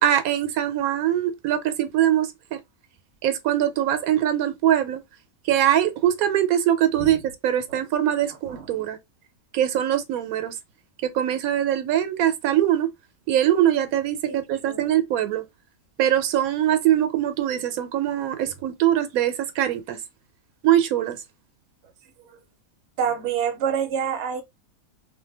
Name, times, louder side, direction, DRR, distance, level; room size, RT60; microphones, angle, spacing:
voice 1, 0.0-2.6 3.2-5.0 5.4-9.0 9.5-10.5 11.0-12.9 13.3-15.4 16.0-20.0 20.6-21.2, right 11 dB, 85° right, 1.0 m, -22 dB
voice 2, 8.5-8.8 14.3-14.4 14.6-14.9 23.0-24.4, right 7 dB, 60° right, 0.9 m, -27 dB
2.5 x 2.2 x 3.3 m
omnidirectional pair, 1.5 m